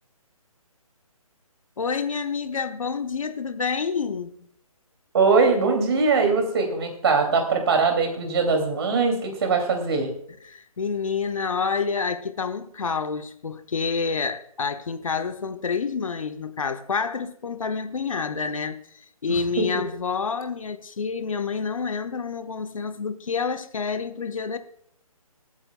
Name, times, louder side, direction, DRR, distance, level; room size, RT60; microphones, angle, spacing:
voice 1, 1.8-4.5 10.5-18.8 19.2-24.6, left 5 dB, 65° left, 0.9 m, -28 dB
voice 2, 5.1-10.1 19.3-19.7, right 4 dB, 45° right, 2.5 m, -21 dB
24.5 x 8.8 x 2.2 m
figure-of-eight pair, 145°, 19 cm